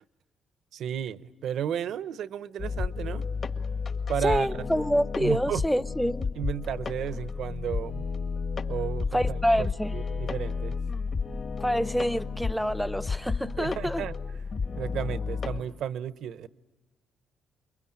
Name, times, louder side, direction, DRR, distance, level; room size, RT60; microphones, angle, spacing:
voice 1, 0.7-3.2 4.1-4.5 5.2-5.6 6.4-8.1 8.7-9.7 9.9-10.7 13.6-14.2 14.8-16.5, right 9 dB, 75° right, 0.8 m, -33 dB
sound 1, 2.6-15.6, left 5 dB, 50° left, 1.8 m, -32 dB
voice 2, 4.2-6.3 9.1-9.9 11.6-14.1, equal, ahead, 0.8 m, -27 dB
29.0 x 23.0 x 8.8 m
cardioid pair, 90°, 0 cm